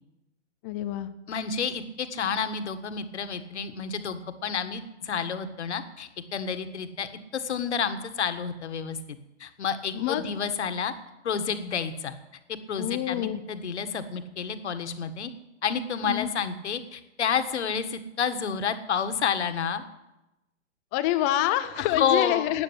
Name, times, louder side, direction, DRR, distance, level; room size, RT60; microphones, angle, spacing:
voice 1, 0.6-1.1 9.9-10.3 12.8-13.4 16.0-16.3 20.9-22.6, left 14 dB, 15° left, 11 dB, 0.4 m, -27 dB
voice 2, 1.3-9.0 9.4-10.9 11.2-12.2 12.5-15.3 15.6-19.8 21.8-22.5, left 6 dB, 65° left, 10 dB, 1.6 m, -30 dB
13.0 x 9.1 x 9.8 m, 0.96 s
hypercardioid pair, 135°, 37 cm